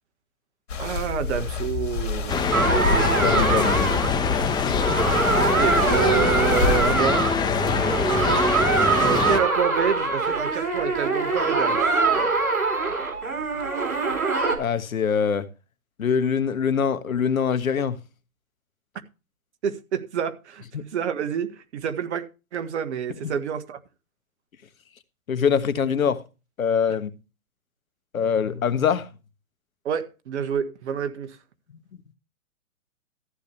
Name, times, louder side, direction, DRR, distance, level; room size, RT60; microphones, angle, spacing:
sound 1, 0.7-6.9, left 4 dB, 60° left, 3.1 m, -28 dB
voice 1, 0.8-2.5 3.7-3.8 5.4-7.3 9.0-11.8 19.6-20.6 20.9-22.2 22.5-23.8 29.8-31.4, right 8 dB, 55° right, 1.7 m, -27 dB
sound 2, 2.3-9.4, left 5 dB, 10° left, 1.1 m, -24 dB
sound 3, 2.5-14.6, right 4 dB, 85° right, 4.3 m, -24 dB
voice 2, 3.2-4.1 14.6-15.4 16.0-18.0 20.7-20.9 23.2-23.3 25.3-26.2 26.6-27.1 28.1-29.1, left 7 dB, 75° left, 1.5 m, -23 dB
14.5 x 8.5 x 3.3 m
hypercardioid pair, 130°, 42 cm